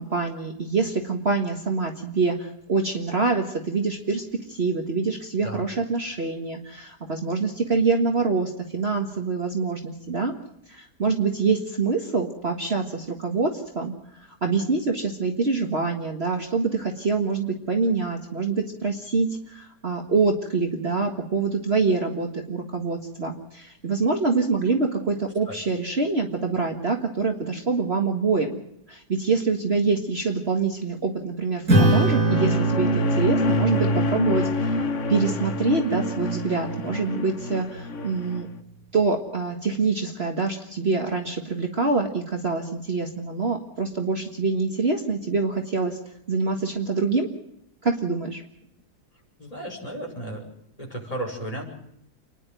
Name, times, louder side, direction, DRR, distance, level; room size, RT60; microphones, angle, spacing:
voice 1, 0.0-10.3 10.7-28.6 28.9-34.8 35.1-38.5 38.9-46.0 46.3-47.3 47.8-48.4, right 4 dB, 40° right, 3 dB, 1.9 m, -25 dB
Acoustic guitar / Strum, 31.7-36.5, right 2 dB, 60° right, 6.5 m, -24 dB
sound 1, 31.8-38.4, left 2 dB, 50° left, 1.4 m, -27 dB
voice 2, 49.4-50.5 50.8-51.6, right 1 dB, 20° left, -1 dB, 5.8 m, -33 dB
29.0 x 11.0 x 9.2 m, 0.77 s
omnidirectional pair, 1.7 m